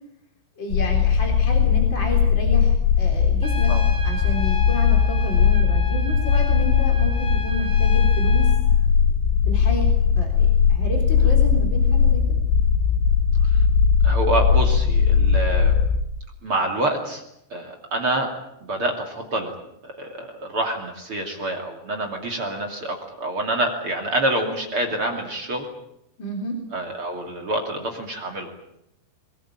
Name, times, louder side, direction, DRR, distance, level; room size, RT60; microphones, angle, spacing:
voice 1, 0.6-3.7 4.0-8.5 9.5-12.4 26.2-26.6, equal, 25° left, 1 dB, 3.8 m, -31 dB
sound 1, 0.7-16.0, left 7 dB, 85° left, 4.1 m, -19 dB
Trumpet, 3.4-8.6, left 3 dB, 5° left, 0.8 m, -34 dB
voice 2, 14.0-15.8 16.4-17.2 17.5-18.3 18.7-19.5 19.8-25.7 26.7-28.5, right 1 dB, 35° right, 2 dB, 3.0 m, -27 dB
22.5 x 21.5 x 9.0 m, 0.80 s
omnidirectional pair, 5.2 m